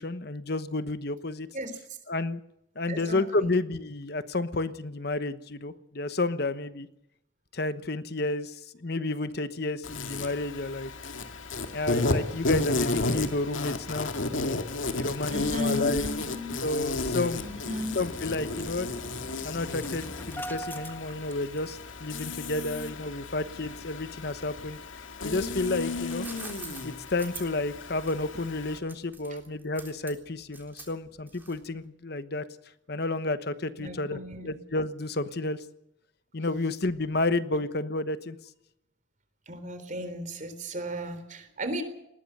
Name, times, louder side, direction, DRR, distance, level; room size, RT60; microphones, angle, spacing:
voice 1, 0.0-1.5 2.1-2.4 2.7-6.9 7.5-10.9 11.7-16.0 16.6-17.5 17.9-18.9 19.4-24.8 25.2-26.3 26.8-32.4 32.9-35.6 36.3-38.4, left 2 dB, 55° left, 12 dB, 1.1 m, -31 dB
voice 2, 2.9-3.5 15.3-16.6 17.4-18.0 33.8-34.6 39.5-41.8, equal, 40° right, 9 dB, 3.7 m, -35 dB
Insect, 9.8-28.8, left 2 dB, 85° left, 2.3 m, -33 dB
Engine starting, 17.4-21.9 22.2-22.3 22.6-22.8, equal, 10° left, 1.5 m, -42 dB
sound 1, 26.0-31.8, right 3 dB, 10° right, 3.6 m, -45 dB
20.0 x 17.5 x 8.0 m, 0.80 s
head